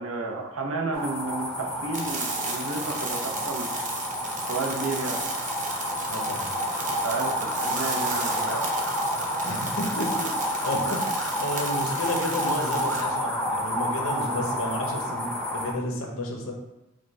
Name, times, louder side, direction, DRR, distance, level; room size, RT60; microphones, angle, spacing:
voice 1, 0.0-3.9 4.5-5.2 6.8-8.8 10.8-10.9, right 3 dB, 85° right, 1 dB, 0.7 m, -32 dB
sound 1, 0.9-15.7, equal, 5° left, 0.5 m, -29 dB
Sizzle on Stove, 1.9-13.0, right 4 dB, 35° right, 0.6 m, -35 dB
voice 2, 6.1-6.5 9.4-16.5, left 1 dB, 90° left, 1 dB, 0.9 m, -32 dB
5.0 x 2.3 x 4.2 m, 0.96 s
head